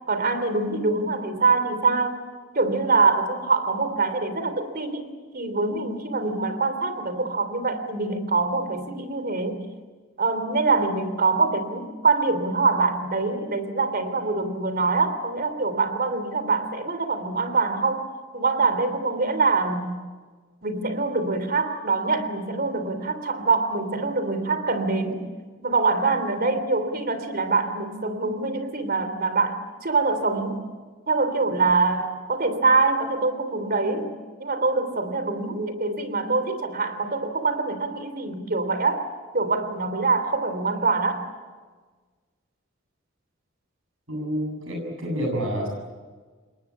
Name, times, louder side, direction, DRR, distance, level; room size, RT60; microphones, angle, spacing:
voice 1, 0.1-2.3 2.5-9.7 10.2-18.1 18.3-20.0 20.6-25.3 25.6-30.7 31.1-39.0 39.3-41.2, right 3 dB, 50° right, 10 dB, 3.2 m, -24 dB
voice 2, 44.1-45.7, equal, 80° right, 1 dB, 7.8 m, -28 dB
27.5 x 22.5 x 8.6 m, 1.4 s
head